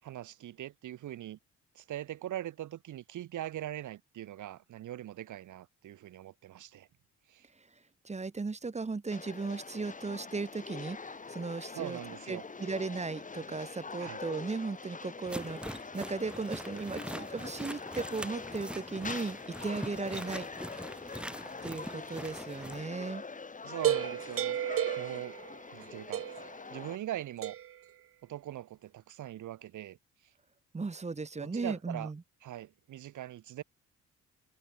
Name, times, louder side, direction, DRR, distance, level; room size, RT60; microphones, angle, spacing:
voice 1, 0.0-1.4 1.7-6.9 7.3-7.5 11.7-12.4 14.0-14.2 23.6-24.6 25.0-25.4 25.7-26.3 26.7-27.5 28.2-30.0 31.4-32.1 32.4-33.6, right 13 dB, 80° right, 6.6 m, -41 dB
voice 2, 8.0-12.0 12.3-20.5 21.1-21.2 21.6-23.2 30.7-32.2, right 4 dB, 20° right, 1.8 m, -36 dB
sound 1, 9.1-27.0, left 4 dB, 25° left, 2.1 m, -44 dB
sound 2, 15.3-22.8, equal, 5° right, 5.9 m, -43 dB
sound 3, 23.8-25.8 26.1-26.6 27.4-27.8, right 11 dB, 45° right, 0.6 m, -32 dB
cardioid pair, 90°, 30 cm